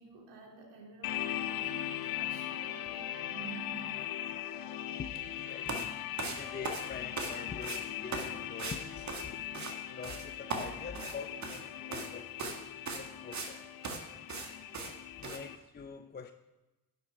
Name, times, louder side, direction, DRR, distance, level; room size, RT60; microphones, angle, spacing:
voice 1, 0.0-3.9, right 5 dB, 70° right, 0 dB, 2.8 m, -50 dB
sound 1, 1.0-15.6, left 12 dB, 55° left, 0.8 m, -40 dB
voice 2, 5.0-9.5 9.9-12.6 12.9-13.6 14.8-16.3, left 5 dB, 25° left, 8 dB, 0.7 m, -45 dB
sound 2, 5.7-5.9 6.2-7.4 7.6-7.8 8.1-8.3 8.6-8.8 9.1-9.7 10.0-10.2 10.5-11.6 11.9-12.1 12.4-12.6 12.9-13.5 13.8-14.0 14.3-14.5 14.7-14.9 15.2-15.4, right 3 dB, 40° right, 1.8 m, -38 dB
10.0 x 8.0 x 4.7 m, 1.0 s
hypercardioid pair, 55°, 42 cm